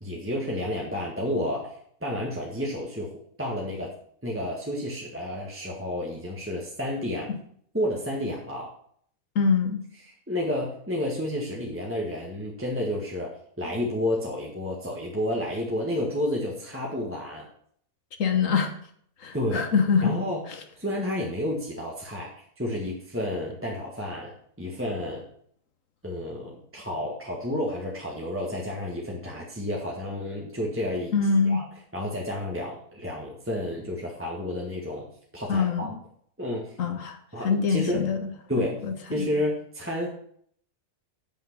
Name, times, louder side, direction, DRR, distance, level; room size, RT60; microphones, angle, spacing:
voice 1, 0.0-3.9 4.2-7.3 7.7-8.7 10.3-17.5 19.3-19.7 20.0-20.4 20.8-25.3 26.0-31.1 31.5-31.7 31.9-35.1 35.3-35.9 36.4-36.8 37.3-38.1 38.5-40.1, left 1 dB, 10° right, -3 dB, 1.6 m, -31 dB
voice 2, 9.3-9.8 18.2-18.7 19.2-20.1 31.1-31.6 35.5-36.0 36.8-37.2 37.4-38.2 38.8-39.3, left 5 dB, 65° left, 7 dB, 1.4 m, -24 dB
8.1 x 7.2 x 6.0 m, 0.63 s
omnidirectional pair, 1.5 m